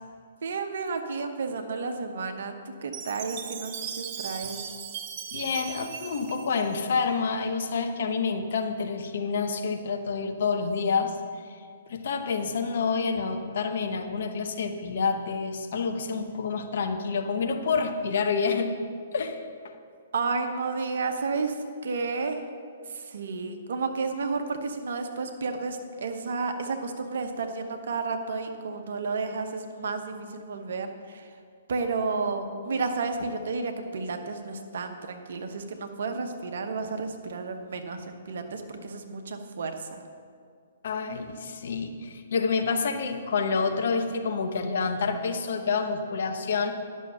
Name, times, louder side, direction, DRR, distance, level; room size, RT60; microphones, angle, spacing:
voice 1, 0.4-4.6 20.1-21.6 21.8-22.4 22.9-31.3 31.7-39.9, right 4 dB, 60° right, 6 dB, 1.0 m, -32 dB
Chime, 2.9-7.3, right 8 dB, 40° right, 0.7 m, -38 dB
voice 2, 5.3-11.2 11.5-11.6 11.9-18.7 19.1-19.7 40.8-46.7, left 5 dB, 55° left, 6 dB, 0.9 m, -28 dB
11.0 x 6.4 x 5.6 m, 2.1 s
figure-of-eight pair, 125°, 0 cm